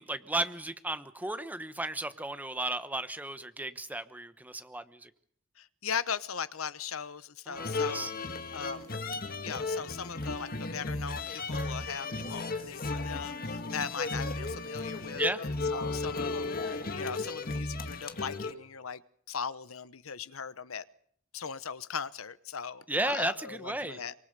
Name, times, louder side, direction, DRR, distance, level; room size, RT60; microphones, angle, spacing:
voice 1, 0.0-5.1 7.5-8.1 15.1-15.4 22.9-24.0, right 2 dB, 10° right, 11 dB, 1.1 m, -34 dB
voice 2, 5.6-8.1 8.5-8.9 9.4-19.0 19.3-20.8 21.3-24.1, left 7 dB, 85° left, 16 dB, 1.0 m, -39 dB
sound 1, 7.5-18.5, left 3 dB, 45° left, 1.8 m, -35 dB
24.5 x 24.0 x 6.7 m, 0.64 s
head